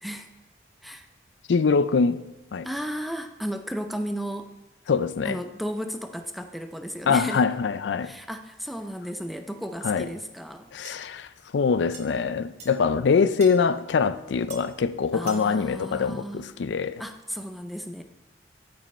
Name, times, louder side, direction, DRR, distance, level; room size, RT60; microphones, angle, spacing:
voice 1, 1.5-2.2 2.5-2.7 4.9-5.4 7.1-8.1 9.8-10.1 10.7-11.3 11.5-17.0, left 5 dB, 85° left, 0.4 m, -23 dB
voice 2, 2.6-4.5 5.2-7.5 8.0-10.7 15.1-16.5 17.0-18.0, equal, ahead, 0.5 m, -34 dB
sound 1, 10.9-11.0 11.9-12.0 12.6-12.7 13.4-13.6 14.5-14.6 15.3-15.5, right 5 dB, 40° right, 1.3 m, -41 dB
14.0 x 5.3 x 4.3 m
head